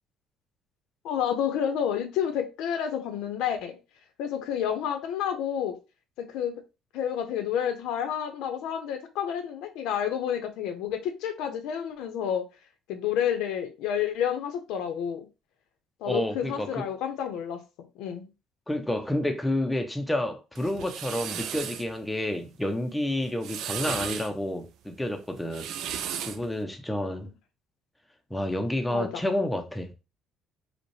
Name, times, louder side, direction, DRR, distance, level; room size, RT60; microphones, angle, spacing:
voice 1, 1.0-3.8 4.2-5.8 6.2-6.6 6.9-12.4 12.9-15.3 16.0-17.6 18.0-18.3 28.9-29.2, left 9 dB, 80° left, 0.7 m, -30 dB
voice 2, 16.1-16.8 18.7-25.7 26.2-27.3 28.3-29.9, left 1 dB, 5° left, 0.5 m, -29 dB
sound 1, 20.5-21.9 23.2-24.3 25.4-26.5, right 9 dB, 60° right, 0.4 m, -35 dB
5.0 x 2.1 x 3.1 m
cardioid pair, 175°, 0 cm